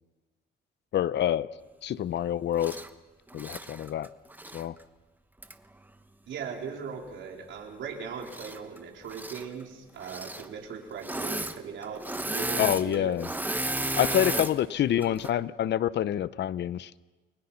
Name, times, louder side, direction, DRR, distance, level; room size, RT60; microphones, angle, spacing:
voice 1, 0.9-1.5 1.8-2.8 3.3-4.1 4.5-4.8 12.6-13.3 14.0-16.9, left 11 dB, 60° left, 17 dB, 0.7 m, -27 dB
Engine / Mechanisms, 2.6-2.9 3.3-4.7 5.4-5.5 8.2-8.8 9.0-9.5 10.0-10.5 11.0-11.6 11.8-14.5 15.0-15.3, right 1 dB, 10° right, 1.1 m, -33 dB
voice 2, 6.3-12.0 12.3-13.1 14.0-14.4, right 6 dB, 65° right, 1 dB, 4.5 m, -39 dB
29.5 x 21.5 x 5.8 m, 1.2 s
cardioid pair, 120°, 21 cm